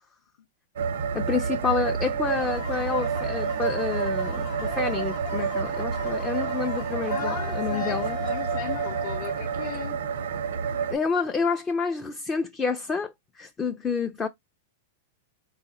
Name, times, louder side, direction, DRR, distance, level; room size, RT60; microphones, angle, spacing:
sound 1, 0.8-10.9, right 6 dB, 85° right, 0.6 m, -29 dB
voice 1, 1.1-8.2 10.9-13.1 13.4-14.3, left 5 dB, 15° left, 0.3 m, -29 dB
sound 2, 2.2-9.8, left 7 dB, 35° left, 0.9 m, -40 dB
voice 2, 7.1-10.0, left 8 dB, 55° left, 0.6 m, -36 dB
4.0 x 2.0 x 3.9 m
supercardioid pair, 165°, 0 cm